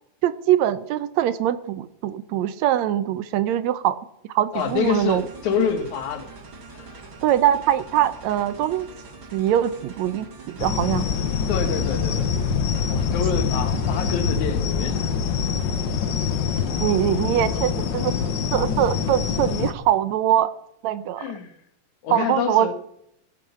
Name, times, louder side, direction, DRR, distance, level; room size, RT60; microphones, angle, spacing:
voice 1, 0.2-4.0 4.3-5.2 7.2-8.9 9.3-11.1 16.8-18.1 18.5-20.5 20.8-21.3 22.1-22.7, right 11 dB, 80° right, 14 dB, 1.9 m, -22 dB
voice 2, 4.5-6.3 6.7-6.9 11.5-12.3 12.9-15.2 21.2-21.5 22.0-22.7, left 7 dB, 85° left, 8 dB, 2.8 m, -27 dB
sound 1, 4.5-14.4, right 3 dB, 45° right, 2.8 m, -44 dB
sound 2, 10.6-19.7, left 6 dB, 60° left, 1.2 m, -24 dB
16.0 x 8.9 x 5.6 m, 0.75 s
omnidirectional pair, 3.3 m